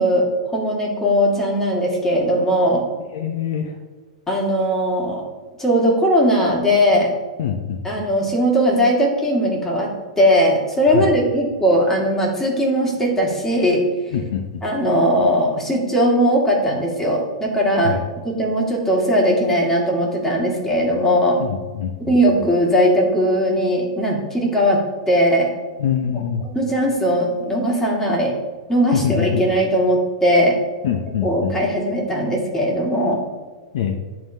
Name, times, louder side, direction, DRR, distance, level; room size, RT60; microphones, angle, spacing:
voice 1, 0.0-2.8 4.3-5.2 5.6-7.1 7.8-9.9 10.2-13.8 14.6-21.4 22.1-24.8 25.1-25.5 26.4-28.3 28.7-30.6 31.2-33.2, equal, 15° left, -2 dB, 1.9 m, -19 dB
voice 2, 3.1-3.8 7.4-7.8 10.9-11.1 14.1-14.6 17.8-18.0 21.4-22.2 25.8-26.4 28.9-29.4 30.8-31.6 33.7-34.0, left 8 dB, 65° left, 6 dB, 0.6 m, -24 dB
10.5 x 3.8 x 2.7 m, 1.4 s
hypercardioid pair, 105°, 3 cm